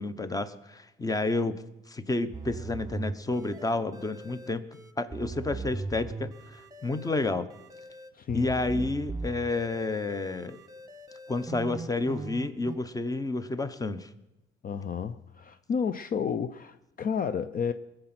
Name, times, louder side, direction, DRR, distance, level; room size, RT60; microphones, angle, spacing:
voice 1, 0.0-4.7 5.0-7.5 8.3-10.6 11.3-14.1, left 2 dB, 20° left, 0.9 m, -30 dB
sound 1, 2.3-12.8, right 4 dB, 15° right, 1.2 m, -40 dB
voice 2, 8.1-8.9 14.6-17.7, left 6 dB, 45° left, 0.6 m, -31 dB
21.0 x 7.9 x 6.0 m
cardioid pair, 90°, 20 cm